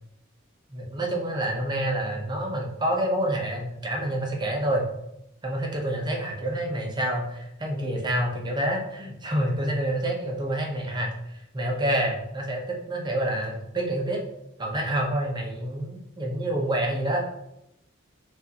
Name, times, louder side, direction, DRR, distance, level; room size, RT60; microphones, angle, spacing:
voice 1, 0.7-4.9 5.4-14.2 14.6-17.2, right 1 dB, 20° right, 0 dB, 0.7 m, -28 dB
6.1 x 2.5 x 2.8 m, 0.83 s
head